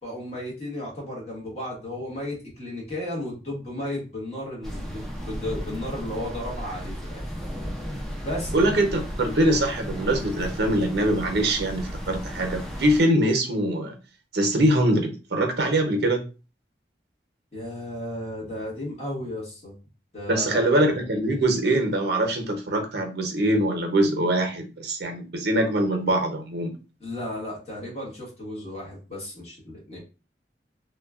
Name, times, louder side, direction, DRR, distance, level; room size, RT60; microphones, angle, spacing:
voice 1, 0.0-7.2 8.2-8.5 17.5-19.8 20.1-20.7 27.0-30.0, left 1 dB, 35° left, -3 dB, 1.2 m, -34 dB
sound 1, 4.6-13.0, equal, ahead, 0.4 m, -34 dB
voice 2, 8.5-14.0 14.3-16.2 20.3-26.7, right 1 dB, 70° right, 4 dB, 0.6 m, -23 dB
3.0 x 2.2 x 2.3 m, 0.32 s
head